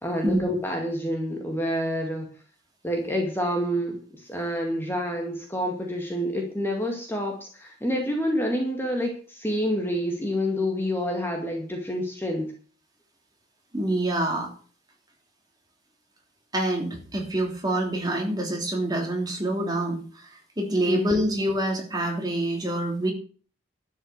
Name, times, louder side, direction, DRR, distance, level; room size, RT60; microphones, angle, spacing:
voice 1, 0.0-2.3 2.8-12.5 20.9-21.2, equal, 10° left, 1 dB, 2.1 m, -28 dB
voice 2, 13.7-14.5 16.5-20.0 20.6-23.1, right 1 dB, 20° right, 1 dB, 3.3 m, -26 dB
12.0 x 6.5 x 8.1 m, 0.41 s
head